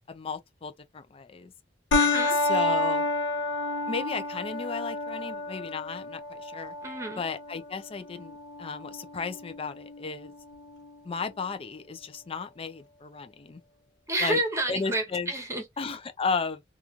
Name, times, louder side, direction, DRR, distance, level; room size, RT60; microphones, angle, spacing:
voice 1, 0.1-1.5 2.3-3.0 3.9-6.7 7.2-10.3 11.0-13.6 14.2-14.4 14.7-15.3 15.8-16.6, left 5 dB, 30° left, 0.4 m, -34 dB
sound 1, 1.9-10.9, left 2 dB, 75° left, 0.7 m, -30 dB
voice 2, 2.0-2.4 6.8-7.2 14.1-15.6, right 2 dB, 15° right, 1.0 m, -29 dB
3.0 x 2.4 x 2.4 m
head